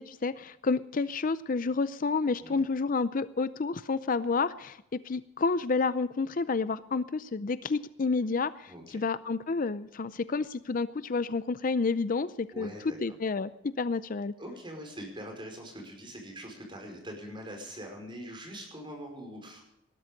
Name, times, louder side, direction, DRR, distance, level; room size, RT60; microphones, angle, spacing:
voice 1, 0.0-12.7 13.0-14.3, left 4 dB, 45° left, 15 dB, 0.5 m, -30 dB
voice 2, 8.7-9.0 12.5-13.1 14.4-19.6, equal, 25° right, 2 dB, 5.2 m, -43 dB
19.5 x 12.5 x 5.2 m, 0.81 s
head